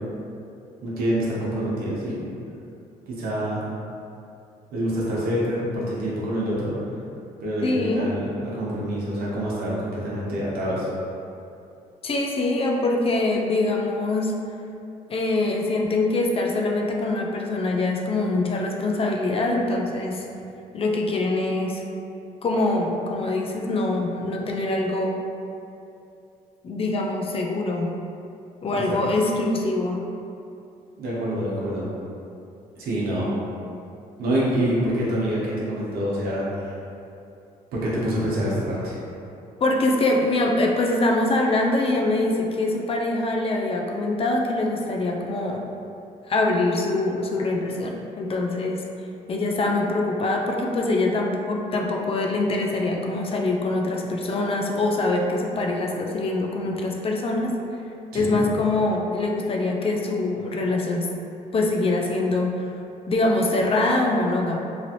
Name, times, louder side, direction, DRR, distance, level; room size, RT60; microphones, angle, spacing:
voice 1, 0.8-2.2 3.1-3.6 4.7-6.7 7.4-10.9 28.7-29.0 31.0-31.9 32.8-33.3 34.2-36.8 37.7-39.0 58.1-58.4, equal, 80° right, -6 dB, 0.9 m, -26 dB
voice 2, 7.6-8.1 12.0-14.4 15.1-20.3 20.7-21.8 22.4-25.3 26.6-28.0 28.6-30.0 39.6-45.6 46.3-48.9 49.3-57.6 58.1-61.1 61.5-62.6 63.1-64.6, left 2 dB, 40° left, 0 dB, 0.4 m, -24 dB
3.1 x 2.5 x 2.8 m, 2.7 s
cardioid pair, 85°, 15 cm